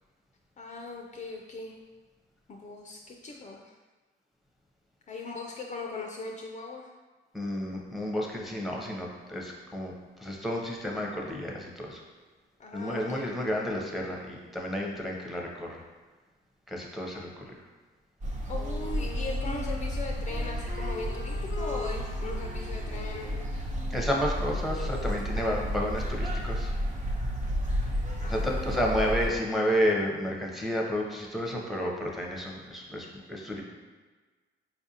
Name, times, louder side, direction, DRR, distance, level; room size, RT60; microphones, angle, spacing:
voice 1, 0.6-1.7 2.5-3.7 5.1-6.9 12.6-13.4 18.5-23.5 25.3-25.8 28.2-29.0, left 3 dB, 35° left, 0 dB, 0.4 m, -39 dB
voice 2, 7.3-9.9 10.2-12.0 12.7-15.8 16.7-17.4 23.9-26.7 28.3-33.6, equal, ahead, -1 dB, 0.6 m, -31 dB
sound 1, 18.2-29.3, equal, 40° right, 0.7 m, -32 dB
Wind instrument woodwind instrument, 18.5-25.2, left 4 dB, 85° left, 0.6 m, -43 dB
4.4 x 2.5 x 2.7 m, 1.3 s
cardioid pair, 90°, 20 cm